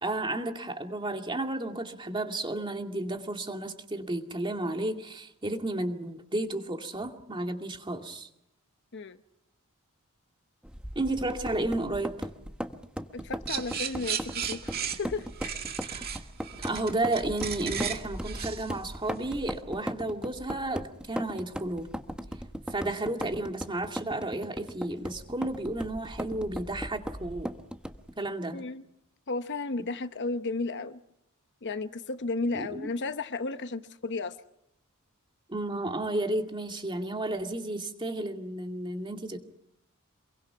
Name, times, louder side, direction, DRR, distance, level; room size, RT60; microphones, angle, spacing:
voice 1, 0.0-8.3 11.0-12.3 15.9-16.1 16.6-21.9 22.7-27.5 28.2-28.6 32.5-32.9 35.5-39.4, right 2 dB, 20° right, 2.3 m, -32 dB
sound 1, 10.6-28.1, equal, 5° right, 1.1 m, -38 dB
voice 2, 13.1-15.6 28.5-28.8 29.3-31.0 31.6-34.4, left 3 dB, 55° left, 1.0 m, -34 dB
sound 2, 13.5-19.6, right 8 dB, 45° right, 2.1 m, -35 dB
27.5 x 22.5 x 5.8 m
head